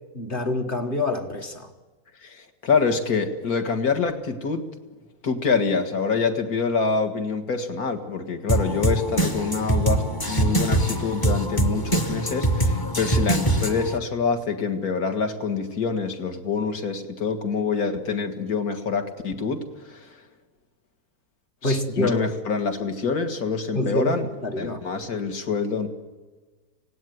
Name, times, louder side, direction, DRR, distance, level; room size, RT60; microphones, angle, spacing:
voice 1, 0.1-1.7 21.6-22.3 23.7-24.8, left 2 dB, 35° left, 1.4 m, -26 dB
voice 2, 2.2-4.6 5.2-19.6 19.9-20.0 21.6-24.2 24.6-25.9, left 5 dB, 60° left, 2.2 m, -26 dB
sound 1, 8.5-14.0, right 1 dB, 15° left, 0.8 m, -23 dB
25.0 x 18.0 x 9.4 m
omnidirectional pair, 1.8 m